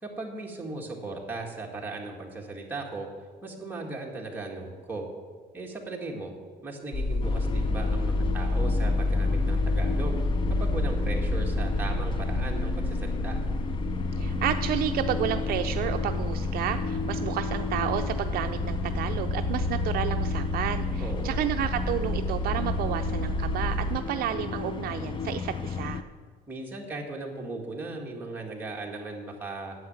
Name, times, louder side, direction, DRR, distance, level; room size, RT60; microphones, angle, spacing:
voice 1, 0.0-3.1 3.4-5.1 5.5-6.3 6.6-10.2 10.6-13.4 21.0-21.4 26.5-29.8, right 3 dB, 10° right, -2 dB, 1.9 m, -37 dB
sound 1, 6.9-24.0, left 1 dB, 55° left, 1.3 m, -29 dB
sound 2, 7.2-26.0, left 5 dB, 30° left, 0.6 m, -33 dB
voice 2, 14.2-26.0, right 11 dB, 60° right, 7 dB, 0.5 m, -31 dB
9.5 x 7.8 x 9.3 m, 1.5 s
cardioid pair, 165°, 17 cm